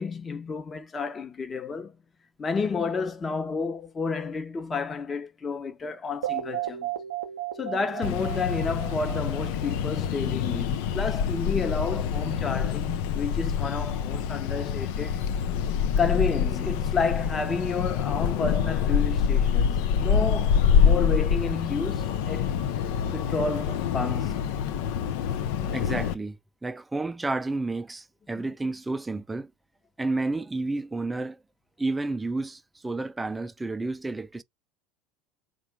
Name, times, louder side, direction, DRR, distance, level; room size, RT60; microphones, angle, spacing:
voice 1, 0.0-2.0 2.4-6.9 7.6-15.2 16.0-22.5 23.1-24.4 28.3-28.5, left 4 dB, 25° left, 0.9 m, -31 dB
sound 1, 6.2-10.2, right 13 dB, 90° right, 0.6 m, -34 dB
sound 2, 8.0-26.1, left 7 dB, 70° left, 0.5 m, -26 dB
voice 2, 25.7-29.5 30.0-31.4 31.8-34.4, right 2 dB, 10° right, 0.4 m, -31 dB
3.7 x 2.4 x 4.6 m
hypercardioid pair, 85°, 0 cm